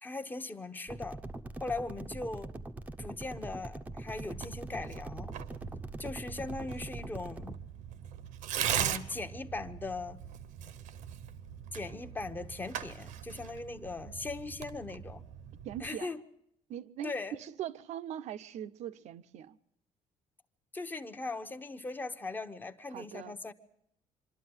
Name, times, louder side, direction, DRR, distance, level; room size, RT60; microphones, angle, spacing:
voice 1, 0.0-1.2 1.6-2.5 3.0-5.3 6.0-7.5 8.7-10.2 11.7-15.2 15.8-16.2 17.0-17.3 20.7-23.5, left 3 dB, 15° left, 0.9 m, -39 dB
sound 1, 0.9-7.6, right 2 dB, 10° right, 0.7 m, -43 dB
Tearing, 4.3-15.9, right 10 dB, 85° right, 1.1 m, -40 dB
voice 2, 15.6-16.1 16.7-19.6 22.9-23.4, right 10 dB, 65° right, 0.8 m, -41 dB
25.0 x 12.5 x 9.6 m
cardioid pair, 150°, 13 cm